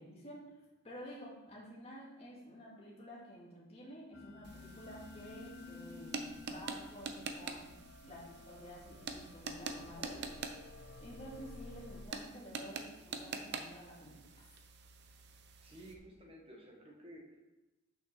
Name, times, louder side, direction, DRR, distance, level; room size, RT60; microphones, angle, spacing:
voice 1, 0.0-10.4 11.0-14.4, equal, 30° left, -5 dB, 2.1 m, -51 dB
sound 1, 4.1-12.0, left 3 dB, 65° left, 0.6 m, -53 dB
sound 2, 4.4-16.0, right 4 dB, 55° right, 0.7 m, -46 dB
voice 2, 15.3-17.5, right 1 dB, 25° right, 0 dB, 1.5 m, -54 dB
6.3 x 5.6 x 6.0 m, 0.99 s
head